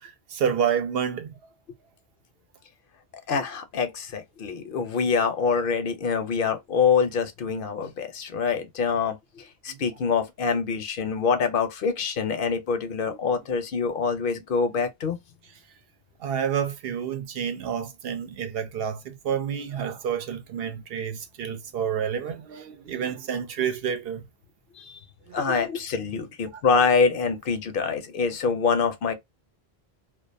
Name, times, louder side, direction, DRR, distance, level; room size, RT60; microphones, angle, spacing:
voice 1, 0.0-1.3 9.7-9.8 13.1-13.2 16.2-24.2 25.3-25.6, right 8 dB, 70° right, 0.8 m, -29 dB
voice 2, 3.3-15.2 24.8-25.0 25.3-29.1, left 5 dB, 65° left, 0.7 m, -25 dB
2.4 x 2.2 x 2.5 m
omnidirectional pair, 1.1 m